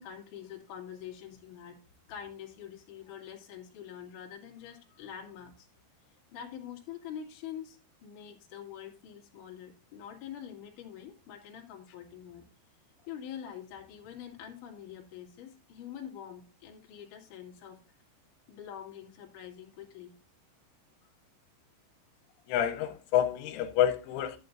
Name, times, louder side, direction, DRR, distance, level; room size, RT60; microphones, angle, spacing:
voice 1, 0.0-1.8 2.1-5.7 6.3-12.4 13.1-17.8 18.5-20.1, left 9 dB, 50° left, 3.0 m, -45 dB
voice 2, 22.5-24.4, left 11 dB, 85° left, 3.4 m, -28 dB
11.5 x 9.6 x 2.6 m
omnidirectional pair, 5.5 m